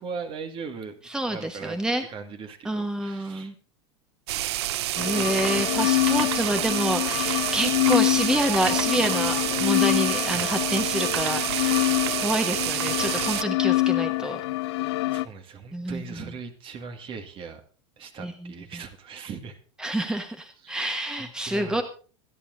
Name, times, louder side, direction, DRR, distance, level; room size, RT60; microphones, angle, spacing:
voice 1, 0.0-1.0 1.3-1.8 2.1-3.5 15.1-17.6 18.0-19.6 20.6-20.8 21.2-21.8, right 5 dB, 35° right, 6 dB, 1.9 m, -39 dB
voice 2, 1.1-2.0 2.6-3.5 4.9-11.9 12.2-14.4 15.7-16.3 18.2-18.8 19.8-21.8, right 1 dB, 5° right, 7 dB, 1.3 m, -28 dB
sound 1, 4.3-13.4, right 15 dB, 65° right, 0.5 m, -28 dB
sound 2, 5.0-15.2, left 19 dB, 60° left, 0.7 m, -26 dB
25.5 x 10.5 x 2.7 m, 0.40 s
hypercardioid pair, 90°, 15 cm